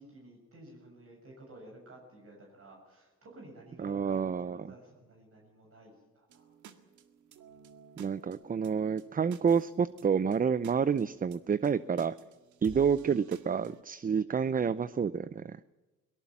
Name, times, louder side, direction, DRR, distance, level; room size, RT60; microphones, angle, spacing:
voice 1, 0.0-6.5, right 1 dB, 50° right, -1 dB, 7.3 m, -53 dB
voice 2, 3.8-4.7 8.0-12.1 12.6-15.6, right 6 dB, 30° right, 16 dB, 0.6 m, -29 dB
sound 1, 6.3-13.8, right 7 dB, 75° right, 2.0 m, -53 dB
23.0 x 19.0 x 7.2 m, 1.1 s
cardioid pair, 90°, 30 cm